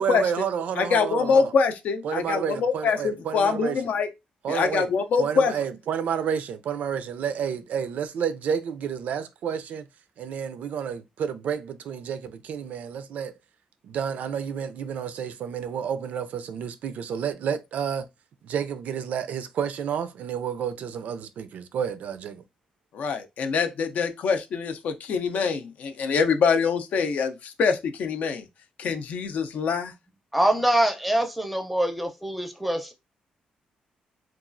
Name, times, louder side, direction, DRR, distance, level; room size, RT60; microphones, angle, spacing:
voice 1, 0.0-1.5 2.0-3.8 4.4-4.9 5.2-9.9 10.2-13.3 13.8-18.0 18.4-22.4, right 8 dB, 70° right, 0.4 m, -30 dB
voice 2, 0.8-4.1 4.5-5.5 22.9-28.5 28.8-29.9, left 5 dB, 70° left, 0.4 m, -24 dB
voice 3, 30.3-32.9, right 1 dB, ahead, 0.5 m, -24 dB
2.9 x 2.3 x 2.5 m
cardioid pair, 135°, 3 cm